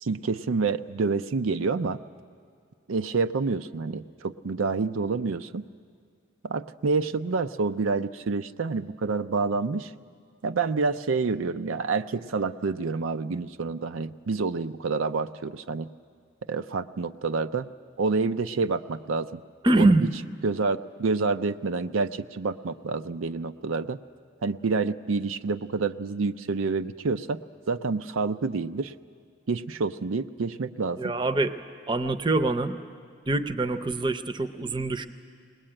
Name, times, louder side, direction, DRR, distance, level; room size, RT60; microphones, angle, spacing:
voice 1, 0.0-2.0 2.9-5.6 6.4-9.9 10.4-15.9 16.5-17.7 18.0-19.3 19.8-20.1 20.4-24.0 24.4-27.4 27.7-28.9 29.5-31.0, right 4 dB, 85° right, 10 dB, 0.5 m, -28 dB
voice 2, 19.6-20.1 31.0-31.6 31.9-32.8 33.3-35.1, right 2 dB, 25° right, 9 dB, 0.6 m, -24 dB
21.0 x 20.0 x 8.8 m, 2.2 s
head